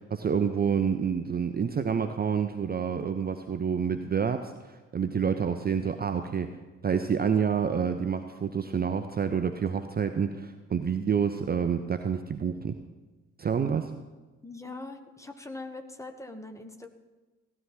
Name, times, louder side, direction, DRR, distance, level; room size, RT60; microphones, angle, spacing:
voice 1, 0.0-6.5 6.8-12.7 13.4-13.9, right 7 dB, 25° right, 8 dB, 0.7 m, -28 dB
voice 2, 14.4-16.9, left 2 dB, 10° left, 6 dB, 1.3 m, -42 dB
15.5 x 9.9 x 4.5 m, 1.2 s
figure-of-eight pair, 45°, 36 cm